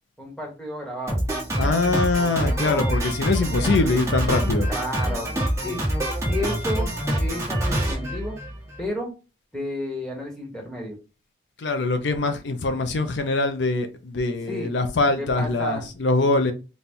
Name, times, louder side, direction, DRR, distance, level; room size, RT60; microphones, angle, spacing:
voice 1, 0.2-1.2 2.4-3.0 3.4-4.0 4.7-5.8 6.3-8.4 8.8-9.1 9.5-11.0 14.5-14.7 15.1-15.9, equal, 5° left, 1.2 m, -32 dB
Drum kit, 1.1-8.9, right 1 dB, 15° right, 1.1 m, -25 dB
voice 2, 1.6-4.7 11.6-16.5, left 3 dB, 75° left, 0.5 m, -23 dB
4.1 x 2.3 x 3.5 m
head